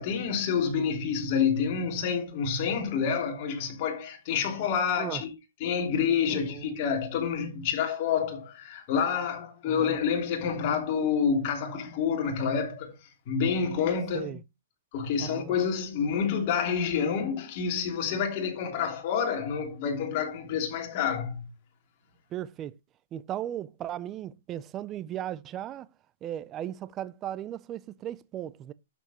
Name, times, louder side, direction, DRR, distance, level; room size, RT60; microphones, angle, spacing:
voice 1, 0.0-5.3 5.6-12.9 13.3-14.3 14.9-21.4, left 6 dB, 35° left, 3.1 m, -28 dB
voice 2, 6.3-6.6 9.7-10.0 14.1-14.4 15.2-15.5 22.3-22.7 23.1-25.9 26.2-28.7, right 11 dB, 20° right, 0.4 m, -36 dB
12.0 x 7.0 x 2.9 m
hypercardioid pair, 165°, 0 cm